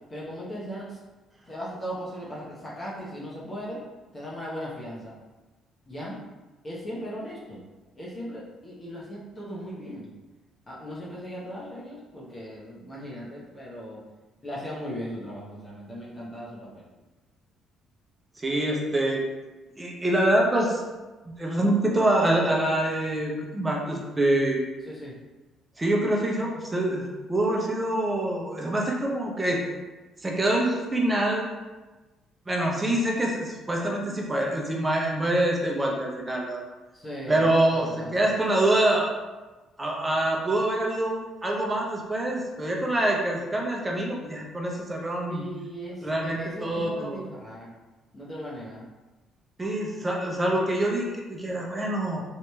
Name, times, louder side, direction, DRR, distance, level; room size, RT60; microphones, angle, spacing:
voice 1, 0.1-1.0 1.5-3.8 4.1-5.1 5.9-6.2 6.6-7.6 7.9-10.1 10.7-14.0 14.4-16.9 24.9-25.1 36.9-37.4 37.7-38.3 45.3-47.7 48.1-48.9, equal, 35° left, -6 dB, 0.9 m, -38 dB
voice 2, 18.4-19.2 19.8-20.8 21.3-24.6 25.8-29.6 30.2-31.5 32.5-36.6 37.3-39.1 39.8-45.4 46.0-47.2 49.6-52.2, right 1 dB, 20° right, -1 dB, 0.7 m, -25 dB
2.8 x 2.7 x 2.3 m, 1.2 s
hypercardioid pair, 55°, 0 cm